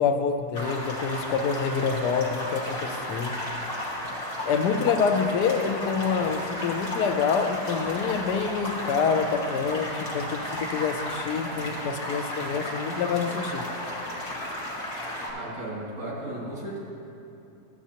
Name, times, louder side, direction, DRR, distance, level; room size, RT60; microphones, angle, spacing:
voice 1, 0.0-3.3 4.5-13.7, left 6 dB, 80° left, 7 dB, 1.2 m, -26 dB
sound 1, 0.5-15.3, left 1 dB, 35° left, 1.4 m, -33 dB
voice 2, 15.3-16.8, right 1 dB, 80° right, -7 dB, 2.9 m, -35 dB
12.5 x 8.4 x 2.8 m, 2.9 s
omnidirectional pair, 1.8 m